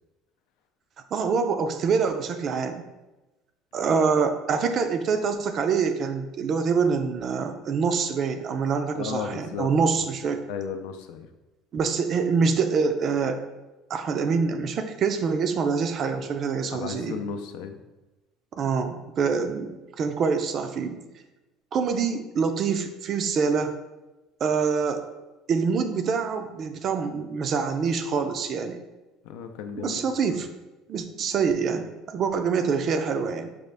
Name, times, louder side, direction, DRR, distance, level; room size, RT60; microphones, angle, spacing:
voice 1, 1.1-2.8 3.7-10.4 11.7-13.4 13.9-17.2 18.6-21.0 21.7-23.7 24.4-25.0 25.5-28.8 29.7-30.5 30.9-33.5, right 5 dB, 40° right, 8 dB, 0.4 m, -25 dB
voice 2, 8.9-10.1 10.5-11.3 16.7-17.8 29.2-30.4, left 7 dB, 85° left, 7 dB, 0.4 m, -35 dB
5.1 x 2.4 x 3.3 m, 1.1 s
cardioid pair, 140°, 0 cm